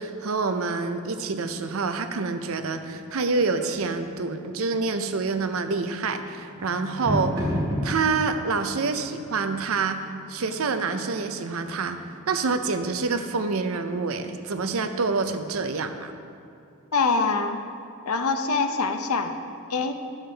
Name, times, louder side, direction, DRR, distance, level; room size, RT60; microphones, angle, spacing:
voice 1, 0.0-7.5 7.8-10.0 10.3-16.1, right 4 dB, 75° right, 8 dB, 0.6 m, -27 dB
sound 1, 2.5-13.3, equal, 50° right, 2.3 m, -36 dB
voice 2, 16.9-17.6 18.1-19.3 19.7-20.0, left 4 dB, 90° left, 7 dB, 0.6 m, -24 dB
11.5 x 7.2 x 3.4 m, 2.5 s
head